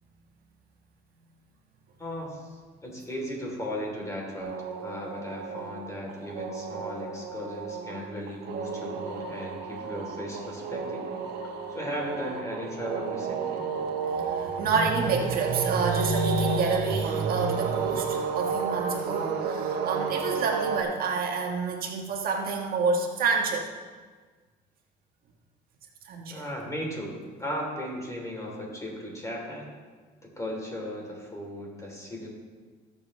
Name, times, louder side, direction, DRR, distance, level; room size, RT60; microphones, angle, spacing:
voice 1, 2.0-2.5 2.8-11.1 11.7-13.7 26.3-29.7 30.2-32.3, equal, 20° left, -1 dB, 3.2 m, -36 dB
sound 1, 4.4-20.8, right 6 dB, 80° right, 1.4 m, -32 dB
voice 2, 14.0-23.7 26.0-26.4, right 4 dB, 60° right, 1 dB, 1.4 m, -28 dB
18.0 x 7.2 x 3.2 m, 1.5 s
cardioid pair, 110°, 17 cm